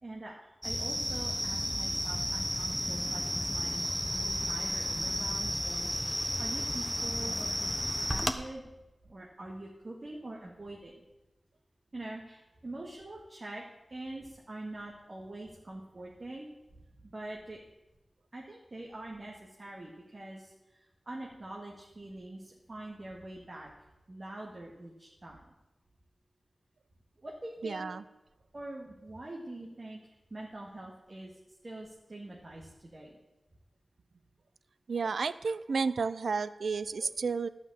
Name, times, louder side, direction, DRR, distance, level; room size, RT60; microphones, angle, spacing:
voice 1, 0.0-3.7 4.1-8.7 9.0-11.0 11.9-13.6 13.9-16.5 17.0-17.6 18.3-23.7 24.1-25.4 27.2-27.8 28.5-31.3 31.6-33.2, right 1 dB, 45° right, -2 dB, 2.0 m, -44 dB
sound 1, 0.6-8.3, equal, 5° right, 1.0 m, -32 dB
voice 2, 27.6-28.0 34.9-37.5, right 5 dB, 90° right, 15 dB, 0.4 m, -32 dB
12.0 x 5.8 x 8.7 m, 1.0 s
wide cardioid pair, 70°, 0 cm